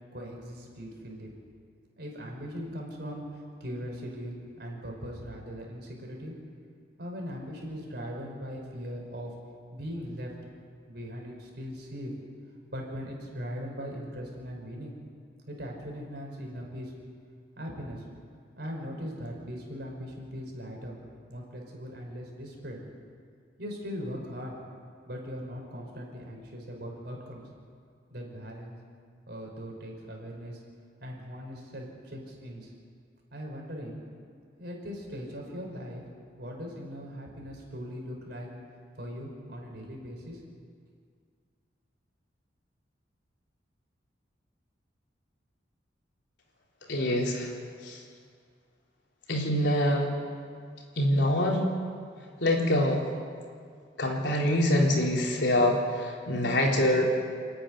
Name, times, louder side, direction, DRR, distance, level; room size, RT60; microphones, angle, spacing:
voice 1, 0.1-1.3 2.0-6.3 7.0-9.3 9.7-10.3 10.9-12.1 12.7-15.0 15.5-16.9 17.6-18.0 18.6-21.0 21.3-22.8 23.6-24.6 25.1-27.5 28.1-28.8 29.3-30.6 31.0-32.7 33.3-34.0 34.6-36.0 36.4-38.5 39.0-40.4, equal, 60° right, 0 dB, 5.2 m, -39 dB
voice 2, 46.9-47.5 47.8-48.0 49.3-50.1 51.0-51.7 52.4-53.1 54.0-57.1, left 1 dB, 70° left, -1 dB, 3.8 m, -25 dB
29.5 x 9.9 x 9.8 m, 2.1 s
head